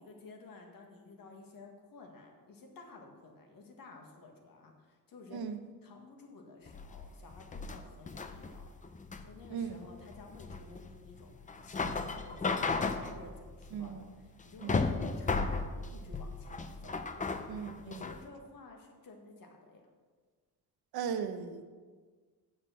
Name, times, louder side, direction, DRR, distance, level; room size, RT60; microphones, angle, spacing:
voice 1, 0.0-5.5 5.8-8.7 9.2-11.3 11.6-17.0 17.5-19.8, left 3 dB, 65° left, 2 dB, 1.8 m, -53 dB
sound 1, 6.7-18.2, left 4 dB, 20° left, 0.5 m, -35 dB
voice 2, 9.5-9.8 13.7-14.1 14.6-14.8 17.5-18.1 20.9-21.7, right 7 dB, 80° right, 9 dB, 0.9 m, -38 dB
6.9 x 6.4 x 7.4 m, 1.5 s
cardioid pair, 130°, 37 cm